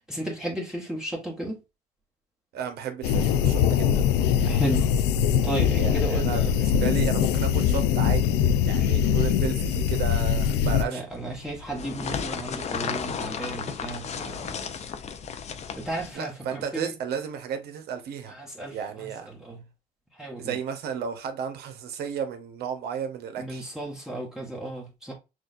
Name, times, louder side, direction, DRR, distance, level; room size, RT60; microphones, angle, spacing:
voice 1, 0.1-1.6 4.4-4.9 5.4-6.6 8.8-9.0 10.8-14.7 15.7-16.9 18.3-19.6 20.1-20.6 23.4-25.1, right 1 dB, 5° right, 1.1 m, -34 dB
voice 2, 2.5-4.1 5.7-8.3 8.6-11.1 16.1-18.3 18.7-19.3 20.4-23.7, right 7 dB, 70° right, 1.0 m, -33 dB
sound 1, 3.0-10.8, left 8 dB, 90° left, 0.5 m, -22 dB
sound 2, 11.1-16.1, left 7 dB, 40° left, 0.6 m, -34 dB
6.2 x 2.4 x 2.5 m
cardioid pair, 110°, 17 cm